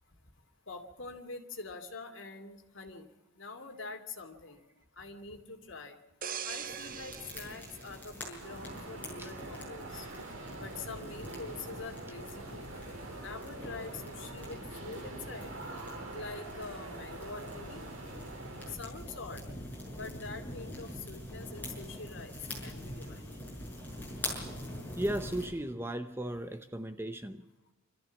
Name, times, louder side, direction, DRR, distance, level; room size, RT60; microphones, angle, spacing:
voice 1, 0.7-3.1 3.4-4.6 5.0-6.0 6.4-10.1 10.5-12.7 13.2-15.5 16.1-17.8 18.7-19.4 20.0-22.3 22.6-23.3, left 3 dB, 65° left, 2.6 m, -45 dB
sound 1, 6.2-8.9 9.3-9.6, right 8 dB, 40° right, 0.8 m, -42 dB
sound 2, 6.5-25.5, left 1 dB, 10° left, 6.6 m, -44 dB
sound 3, 8.4-18.8, right 2 dB, 75° right, 2.9 m, -45 dB
voice 2, 25.0-27.4, right 1 dB, 10° right, 0.8 m, -36 dB
27.0 x 14.0 x 7.3 m
head